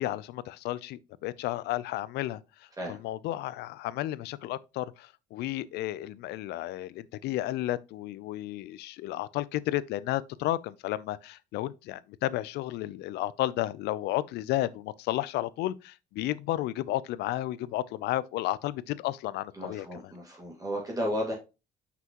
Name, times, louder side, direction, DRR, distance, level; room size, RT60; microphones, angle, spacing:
voice 1, 0.0-2.4 2.9-20.1, left 15 dB, 80° left, 0.4 m, -32 dB
voice 2, 19.5-21.3, equal, 20° right, 1.9 m, -33 dB
5.8 x 5.7 x 2.9 m
cardioid pair, 110°, 17 cm